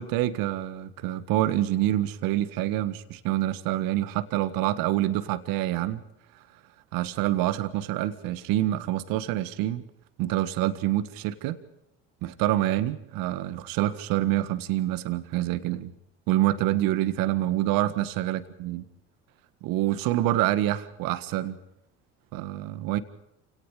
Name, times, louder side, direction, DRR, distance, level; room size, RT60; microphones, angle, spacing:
voice 1, 0.0-6.0 6.9-9.8 10.2-11.6 12.2-15.9 16.3-18.8 19.6-21.6 22.3-23.0, right 14 dB, 65° right, 12 dB, 1.7 m, -26 dB
28.5 x 18.0 x 5.0 m, 0.82 s
hypercardioid pair, 75°, 37 cm